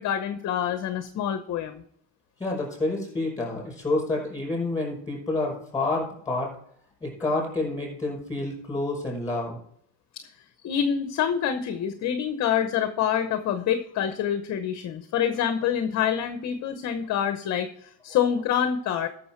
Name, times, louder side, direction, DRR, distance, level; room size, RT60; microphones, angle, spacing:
voice 1, 0.0-1.8 10.2-10.3 10.6-19.1, left 9 dB, 35° left, 9 dB, 0.8 m, -26 dB
voice 2, 2.4-6.5 7.0-9.6, left 2 dB, 10° left, -1 dB, 5.3 m, -28 dB
13.0 x 6.6 x 4.4 m, 0.67 s
supercardioid pair, 130°, 46 cm